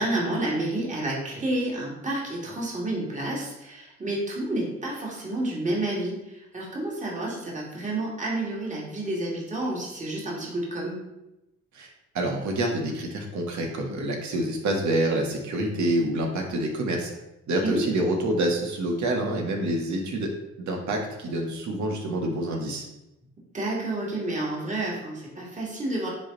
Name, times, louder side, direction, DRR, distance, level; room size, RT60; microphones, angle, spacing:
voice 1, 0.0-11.0 17.6-17.8 23.5-26.1, right 1 dB, 25° right, -4 dB, 2.5 m, -30 dB
voice 2, 11.7-17.1 17.5-20.3 20.6-22.9, right 1 dB, 70° right, 1 dB, 1.8 m, -27 dB
9.9 x 3.7 x 4.0 m, 0.95 s
cardioid pair, 90°, 30 cm